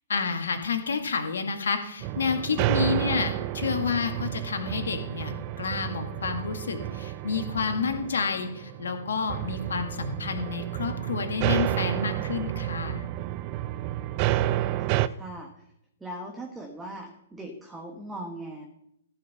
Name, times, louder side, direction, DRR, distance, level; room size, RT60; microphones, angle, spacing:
voice 1, 0.1-13.1, left 5 dB, 70° left, 5 dB, 2.0 m, -29 dB
sound 1, 2.0-15.1, right 14 dB, 35° right, 0.5 m, -30 dB
voice 2, 13.9-15.7 16.0-18.7, right 1 dB, 10° right, 2 dB, 1.5 m, -40 dB
15.0 x 5.6 x 6.9 m, 0.77 s
figure-of-eight pair, 120°, 0 cm